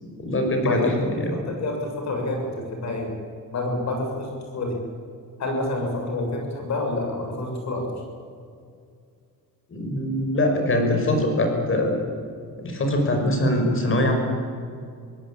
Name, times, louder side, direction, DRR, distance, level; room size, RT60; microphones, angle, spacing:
voice 1, 0.0-1.3 9.7-12.0 12.6-14.1, left 1 dB, 40° left, 4 dB, 5.8 m, -23 dB
voice 2, 0.6-1.1 1.5-1.8 2.0-3.1 3.5-4.8 5.4-7.9, left 2 dB, 55° left, 2 dB, 7.0 m, -28 dB
24.0 x 17.5 x 8.7 m, 2.4 s
cardioid pair, 135°, 33 cm